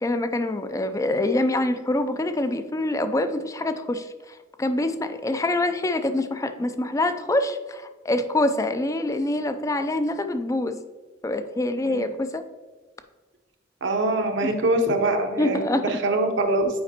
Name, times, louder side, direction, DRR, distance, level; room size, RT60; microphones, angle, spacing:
voice 1, 0.0-10.8 11.2-12.4 14.4-14.6 15.4-16.0, left 1 dB, 15° left, 9 dB, 0.3 m, -25 dB
voice 2, 13.8-16.7, right 2 dB, 70° right, 4 dB, 0.8 m, -24 dB
8.6 x 5.0 x 2.8 m, 1.3 s
head